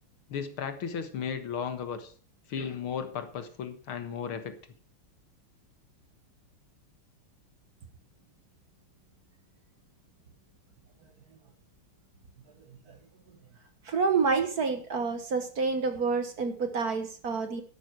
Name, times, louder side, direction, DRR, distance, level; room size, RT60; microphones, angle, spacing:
voice 1, 0.3-2.1 2.5-4.6, left 7 dB, 70° left, 9 dB, 2.3 m, -35 dB
voice 2, 13.9-17.6, right 4 dB, 50° right, 8 dB, 1.5 m, -28 dB
12.5 x 11.5 x 4.7 m, 0.42 s
omnidirectional pair, 2.4 m